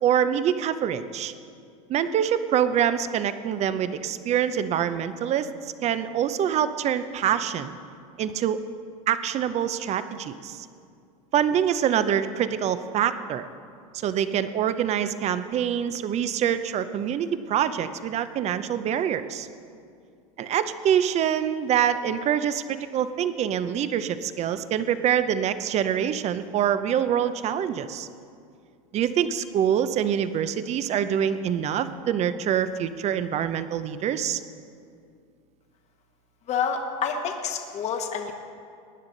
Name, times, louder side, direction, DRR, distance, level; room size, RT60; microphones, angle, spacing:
voice 1, 0.0-1.3 1.9-5.5 5.8-7.7 8.2-8.6 9.1-10.7 11.3-13.5 13.9-19.5 20.4-28.1 28.9-34.4, right 9 dB, 40° right, 12 dB, 0.7 m, -25 dB
voice 2, 36.5-38.3, left 6 dB, 40° left, 4 dB, 1.2 m, -28 dB
19.0 x 9.6 x 4.0 m, 2.3 s
supercardioid pair, 115°, 18 cm